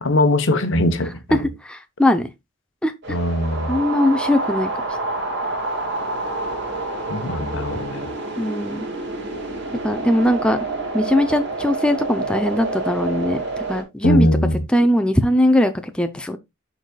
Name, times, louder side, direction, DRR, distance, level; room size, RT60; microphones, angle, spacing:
voice 1, 0.0-1.5 3.1-3.8 7.1-8.1 14.0-14.6, left 1 dB, 65° left, 0.9 m, -21 dB
voice 2, 1.6-2.3 2.8-3.2 3.7-4.7 8.4-8.9 9.8-10.6 10.9-13.4 13.7-14.3 14.7-16.4, left 1 dB, 5° left, 0.5 m, -20 dB
sound 1, 3.0-13.8, right 2 dB, 60° right, 1.9 m, -28 dB
11.0 x 4.0 x 2.2 m
head